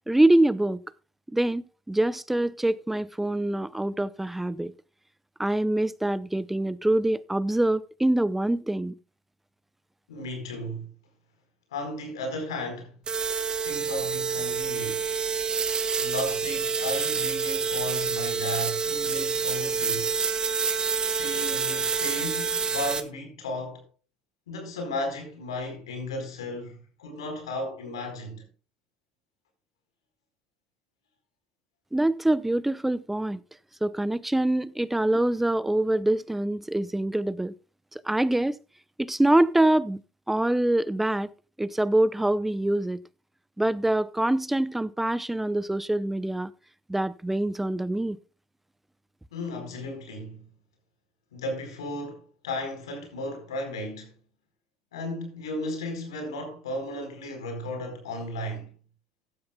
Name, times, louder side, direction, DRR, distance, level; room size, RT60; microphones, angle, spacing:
voice 1, 0.1-0.8 1.3-4.7 5.4-8.9 31.9-33.4 33.8-37.5 37.9-38.6 39.0-40.0 40.3-41.3 41.6-43.0 43.6-46.5 46.9-48.2, right 1 dB, 5° right, 0.7 m, -25 dB
voice 2, 10.1-10.9 11.7-13.0 13.6-15.1 16.0-20.2 21.0-23.9 24.5-28.4 49.3-50.4 51.3-54.1 54.9-58.7, left 1 dB, 85° left, 4.6 m, -35 dB
sound 1, 13.1-23.0, right 5 dB, 30° right, 1.8 m, -27 dB
15.0 x 12.0 x 2.3 m
hypercardioid pair, 70°, 3 cm